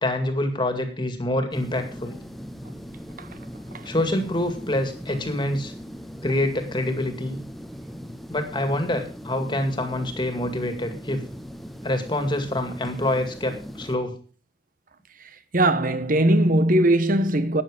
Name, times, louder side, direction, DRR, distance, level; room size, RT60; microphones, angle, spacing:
voice 1, 0.0-2.1 3.8-5.7 6.2-7.4 8.3-11.2 11.8-14.1, left 1 dB, 25° left, 2.2 m, -26 dB
sound 1, 1.5-14.0, equal, ahead, 1.1 m, -39 dB
voice 2, 15.5-17.6, right 1 dB, 50° right, 1.1 m, -19 dB
12.5 x 9.8 x 5.0 m
head